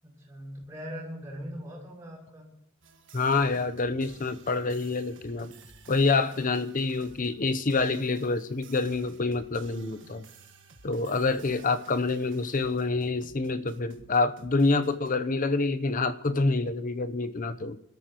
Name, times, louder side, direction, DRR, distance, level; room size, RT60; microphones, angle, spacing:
voice 1, 0.0-2.5, equal, 15° right, -6 dB, 6.5 m, -41 dB
sound 1, 2.8-15.1, right 3 dB, 65° right, 1.5 m, -53 dB
voice 2, 3.1-5.5 5.9-10.2 10.8-17.8, left 3 dB, 40° left, 11 dB, 0.7 m, -27 dB
28.0 x 13.0 x 3.0 m, 0.71 s
head